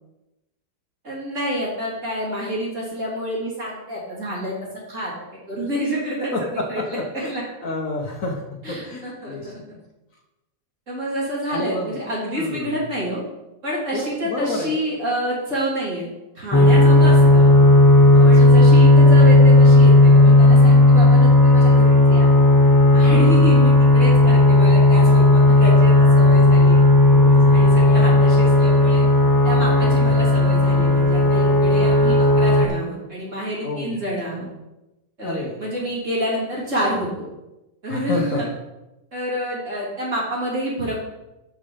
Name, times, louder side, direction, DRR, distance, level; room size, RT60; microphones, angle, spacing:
voice 1, 1.0-4.5 4.9-7.4 8.6-9.6 10.9-13.2 13.6-16.1 16.3-17.5 18.2-22.3 22.9-26.8 27.5-29.0 29.4-34.5 35.2-37.3 37.8-38.5 39.1-41.0, equal, 45° right, -6 dB, 3.7 m, -28 dB
voice 2, 6.3-7.3 7.6-8.4 8.7-9.5 11.5-11.9 12.4-12.8 13.9-14.7 16.8-17.0 18.1-18.5 23.0-23.4 27.1-28.0 29.7-30.1 33.6-34.0 35.2-35.5 37.9-38.4, left 2 dB, 55° left, 1 dB, 1.4 m, -29 dB
sound 1, 16.5-32.7, left 2 dB, 30° left, 0.4 m, -13 dB
8.1 x 6.3 x 5.7 m, 0.98 s
omnidirectional pair, 1.8 m